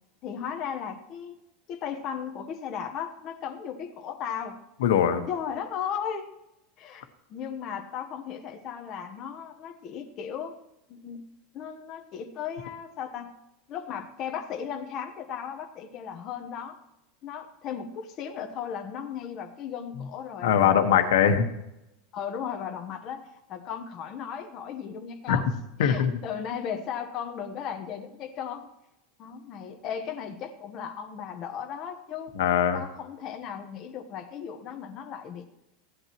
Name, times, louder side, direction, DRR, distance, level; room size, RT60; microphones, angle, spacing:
voice 1, 0.2-1.4 1.7-4.6 5.3-6.3 6.8-10.5 10.9-11.2 11.5-13.3 13.7-16.8 17.2-20.8 21.2-21.3 22.1-28.7 29.2-32.3 32.7-35.5, left 8 dB, 30° left, 4 dB, 1.0 m, -36 dB
voice 2, 4.8-5.2 20.4-21.4 25.3-25.4 25.8-26.1 32.3-32.8, left 8 dB, 85° left, 7 dB, 1.3 m, -21 dB
16.0 x 11.5 x 3.0 m, 0.89 s
supercardioid pair, 165°, 0 cm